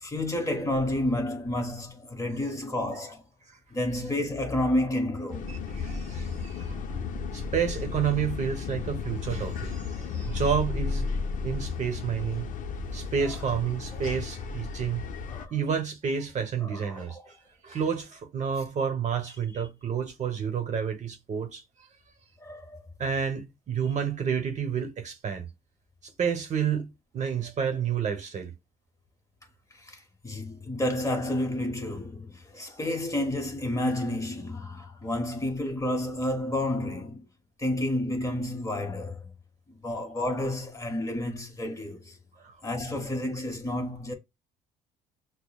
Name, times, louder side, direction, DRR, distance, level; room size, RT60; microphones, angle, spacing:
voice 1, 0.0-3.2 3.7-5.6 13.2-13.4 13.9-14.0 15.3-15.5 16.6-17.2 22.4-22.8 29.7-37.2 37.6-39.3 39.7-42.2 42.6-44.1, left 1 dB, 20° left, 1.1 m, -30 dB
sound 1, 5.3-15.5, left 5 dB, 50° left, 0.7 m, -34 dB
voice 2, 5.8-6.8 7.3-11.2 11.4-12.5 12.9-15.1 15.5-17.4 17.6-21.6 23.0-25.4 26.0-26.9 27.1-28.5 42.4-42.5, right 7 dB, 45° right, 0.9 m, -30 dB
6.2 x 2.1 x 2.3 m
cardioid pair, 110°, 17 cm